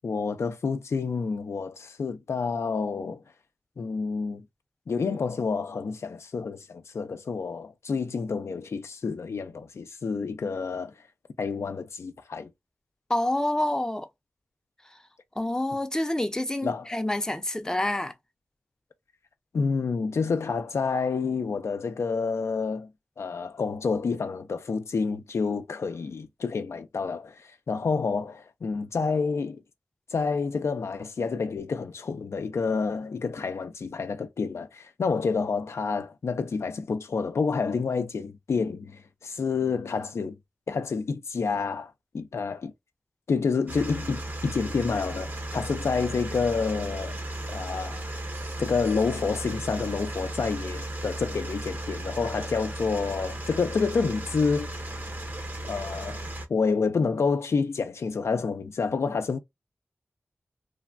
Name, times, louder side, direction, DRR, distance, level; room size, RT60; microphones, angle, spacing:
voice 1, 0.0-3.2 3.8-4.4 4.9-10.9 11.4-12.5 16.6-16.9 19.5-22.9 23.2-29.6 30.1-40.4 40.7-42.7 43.3-47.2 47.5-48.1 48.6-54.7 55.7-56.2 56.5-59.4, left 5 dB, 75° left, 0.4 m, -28 dB
voice 2, 13.1-14.1 15.4-18.1, left 1 dB, 15° left, 0.5 m, -27 dB
sound 1, 43.7-56.5, right 1 dB, 45° right, 0.8 m, -35 dB
3.2 x 2.1 x 2.3 m
wide cardioid pair, 60°, 5 cm